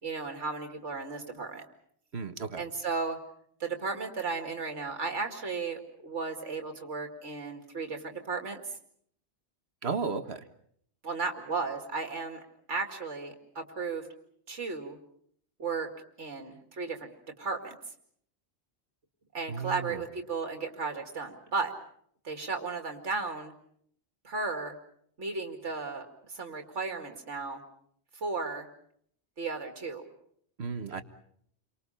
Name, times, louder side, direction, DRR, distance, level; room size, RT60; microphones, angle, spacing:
voice 1, 0.0-1.6 2.6-3.2 3.6-8.6 11.0-12.4 12.7-14.1 14.5-15.0 15.6-15.9 16.2-17.1 17.4-17.7 19.3-21.7 22.2-23.5 24.2-24.8 25.2-27.6 28.1-28.7 29.4-30.1, right 4 dB, 90° right, 4 dB, 2.5 m, -34 dB
voice 2, 2.1-2.6 9.8-10.4 19.5-20.0 30.6-31.0, right 5 dB, 65° right, 8 dB, 1.8 m, -34 dB
29.5 x 24.5 x 5.6 m, 0.66 s
omnidirectional pair, 1.2 m